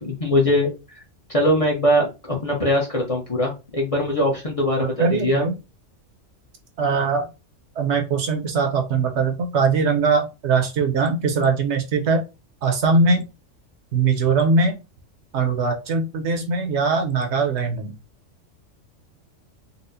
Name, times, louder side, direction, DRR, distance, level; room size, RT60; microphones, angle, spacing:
voice 1, 0.0-1.0 1.3-5.4, left 1 dB, 35° left, -1 dB, 0.7 m, -21 dB
voice 2, 4.8-5.5 6.8-7.3 7.8-12.2 12.6-13.3 13.9-14.8 15.3-17.9, right 4 dB, 70° right, 4 dB, 1.0 m, -21 dB
4.1 x 2.0 x 2.6 m, 0.27 s
omnidirectional pair, 1.3 m